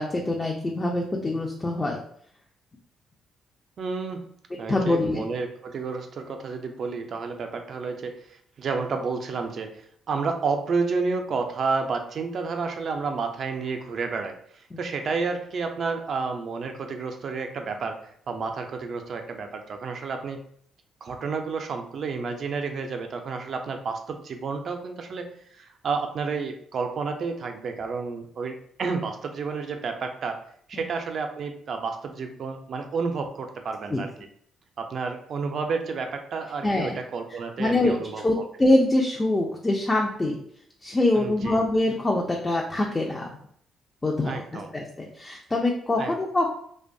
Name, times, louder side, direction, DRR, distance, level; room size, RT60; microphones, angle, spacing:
voice 1, 0.0-2.0 4.7-5.2 14.7-14.8 33.9-34.0 36.6-37.0 37.3-40.4 40.8-43.4 44.0-46.5, left 2 dB, 20° left, -1 dB, 0.4 m, -24 dB
voice 2, 3.8-4.3 4.6-20.4 21.0-30.4 30.7-34.1 34.8-38.5 41.1-41.6 44.2-44.7 46.0-46.2, right 4 dB, 55° right, 5 dB, 0.4 m, -31 dB
2.5 x 2.2 x 2.5 m, 0.64 s
cardioid pair, 90°, 0 cm